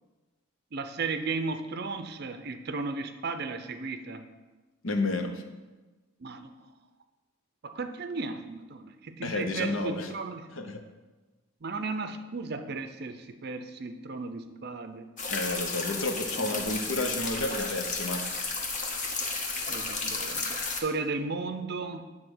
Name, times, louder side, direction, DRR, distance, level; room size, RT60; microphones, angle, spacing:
voice 1, 0.7-4.3 6.2-6.6 7.6-10.5 11.6-15.1 16.4-16.6 19.7-22.1, right 3 dB, 50° right, 8 dB, 0.5 m, -35 dB
voice 2, 4.8-5.4 9.2-10.1 10.6-10.8 15.3-18.2, left 2 dB, 70° left, 6 dB, 0.8 m, -31 dB
sound 1, 15.2-20.8, left 3 dB, 35° left, 0.9 m, -33 dB
9.9 x 3.7 x 6.1 m, 1.2 s
head